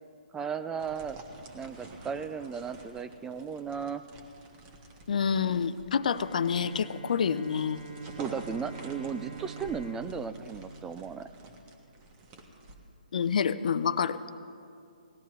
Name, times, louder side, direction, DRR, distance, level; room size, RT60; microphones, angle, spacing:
voice 1, 0.3-1.2 1.5-4.0 8.2-11.3, right 6 dB, 10° right, 10 dB, 0.3 m, -35 dB
sound 1, 0.8-12.8, right 2 dB, 25° right, 1.6 m, -49 dB
voice 2, 5.1-7.8 13.1-14.2, left 7 dB, 55° left, 14 dB, 0.6 m, -28 dB
Bowed string instrument, 6.0-11.6, right 4 dB, 85° right, 2.0 m, -46 dB
19.0 x 13.0 x 3.2 m, 2.5 s
figure-of-eight pair, 140°, 5 cm